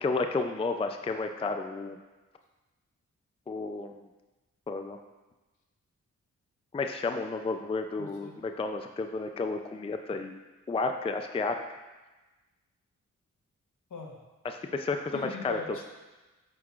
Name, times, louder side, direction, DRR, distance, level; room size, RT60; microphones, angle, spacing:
voice 1, 0.0-2.0 3.5-4.1 4.7-5.0 6.7-10.4 10.7-11.6 14.4-15.6, left 3 dB, 20° left, 6 dB, 0.4 m, -32 dB
voice 2, 8.0-8.4 13.9-14.2 15.1-15.9, left 4 dB, 65° left, -1 dB, 1.2 m, -40 dB
7.5 x 5.6 x 2.4 m, 1.2 s
cardioid pair, 60°, 32 cm